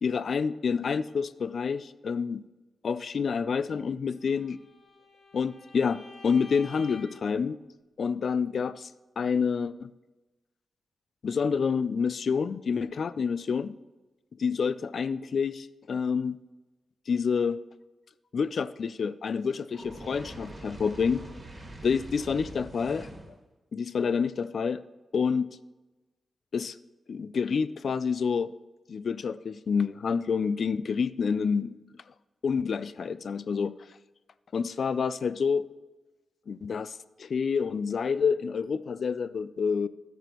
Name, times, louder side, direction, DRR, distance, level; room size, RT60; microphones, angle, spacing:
voice 1, 0.0-2.4 2.8-4.6 5.3-7.6 8.0-8.9 9.2-9.9 11.2-13.7 14.4-16.4 17.1-17.6 18.3-21.2 21.8-23.1 23.7-24.8 25.1-25.5 26.5-26.8 27.1-28.5 28.9-31.7 32.4-33.7 34.5-35.6 36.5-39.9, left 6 dB, 55° left, 15 dB, 0.3 m, -28 dB
Bowed string instrument, 4.3-7.3, left 3 dB, 70° left, 2.8 m, -49 dB
Fire, 19.7-23.4, right 1 dB, 25° right, 1.5 m, -44 dB
13.0 x 9.1 x 3.0 m, 1.1 s
wide cardioid pair, 155°, 0 cm